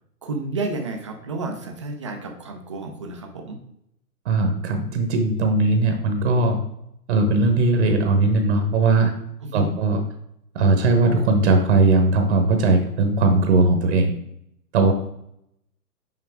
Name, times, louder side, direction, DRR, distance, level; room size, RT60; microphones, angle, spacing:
voice 1, 0.2-3.6 9.4-9.8, right 3 dB, 20° right, 4 dB, 0.4 m, -31 dB
voice 2, 4.2-6.6 7.1-9.1 9.5-10.0 10.5-14.1 14.7-14.9, right 3 dB, 45° right, 5 dB, 1.0 m, -19 dB
5.8 x 5.1 x 3.5 m, 0.77 s
hypercardioid pair, 135°, 47 cm